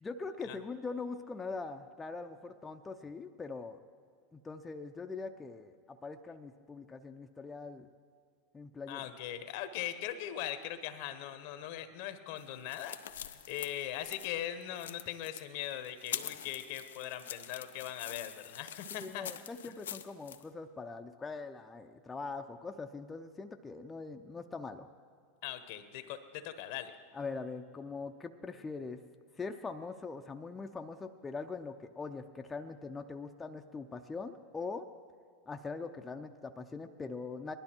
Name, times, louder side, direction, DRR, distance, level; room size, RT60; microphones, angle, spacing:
voice 1, 0.0-3.8 4.3-7.9 8.5-9.1 18.9-24.9 27.1-29.0 29.4-34.9 35.5-37.5, left 4 dB, 20° left, 5 dB, 0.6 m, -42 dB
voice 2, 8.9-19.3 25.4-26.9, left 11 dB, 65° left, 11 dB, 1.0 m, -40 dB
sound 1, 12.4-20.4, left 10 dB, 85° left, 0.5 m, -45 dB
19.0 x 12.0 x 4.5 m, 2.1 s
hypercardioid pair, 100°, 0 cm